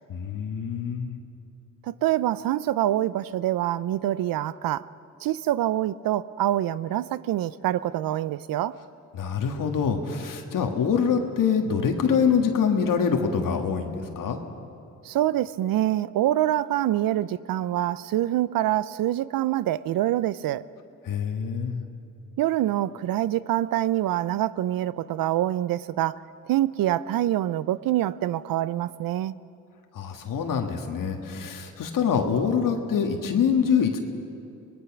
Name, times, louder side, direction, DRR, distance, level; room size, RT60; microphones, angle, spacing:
voice 1, 0.1-1.2 9.1-14.4 21.0-21.8 29.9-34.0, left 6 dB, 70° left, 4 dB, 1.7 m, -25 dB
voice 2, 1.9-4.8 5.2-8.8 15.0-20.6 22.4-26.2 26.5-29.4, right 13 dB, 80° right, 18 dB, 0.6 m, -25 dB
24.0 x 19.5 x 6.0 m, 2.6 s
cardioid pair, 90°, 34 cm